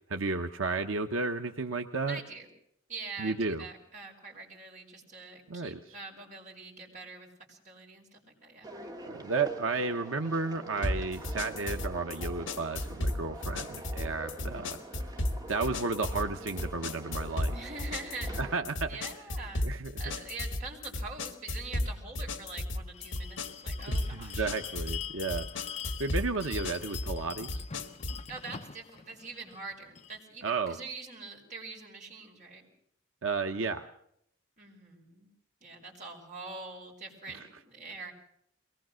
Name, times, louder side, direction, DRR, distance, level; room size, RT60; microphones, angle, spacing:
voice 1, 0.0-2.2 3.2-3.6 5.5-5.8 9.1-14.8 15.5-17.5 18.4-19.0 19.6-19.9 23.9-25.7 26.0-27.6 30.4-30.8 33.2-33.8, right 4 dB, 80° right, 5 dB, 1.0 m, -33 dB
voice 2, 2.1-2.5 2.9-8.7 14.4-14.7 17.5-18.3 18.9-19.7 20.0-24.5 28.3-32.7 34.6-35.3 35.6-38.1, right 3 dB, 40° right, -1 dB, 5.2 m, -44 dB
sound 1, 8.6-18.5, right 1 dB, 20° right, 1.9 m, -46 dB
sound 2, 10.8-28.3, left 1 dB, 70° left, 2.0 m, -35 dB
Bell, 22.9-30.2, left 8 dB, 35° left, 0.7 m, -44 dB
22.5 x 19.0 x 6.4 m, 0.70 s
head